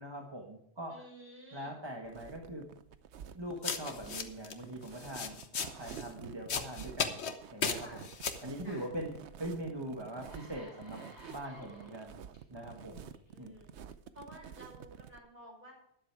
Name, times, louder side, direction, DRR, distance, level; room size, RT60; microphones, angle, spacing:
voice 1, 0.0-1.0 1.5-2.6 3.3-7.2 7.5-8.1 8.4-9.1 9.4-11.0 11.3-12.2 12.5-13.1 13.4-13.5, right 1 dB, 25° right, 1 dB, 1.4 m, -42 dB
voice 2, 0.9-1.7 7.8-8.1 8.6-8.9 13.3-13.7 14.1-15.7, equal, 55° right, -1 dB, 5.9 m, -52 dB
sound 1, 2.0-15.2, right 8 dB, 90° right, 1.0 m, -50 dB
sound 2, 3.6-4.5 4.9-6.1 6.5-7.3 7.6-8.4, left 6 dB, 80° left, 1.3 m, -35 dB
sound 3, 9.5-9.6 10.0-12.4 13.1-13.3, left 1 dB, 25° left, 3.5 m, -56 dB
12.5 x 10.5 x 4.7 m, 0.76 s
omnidirectional pair, 1.1 m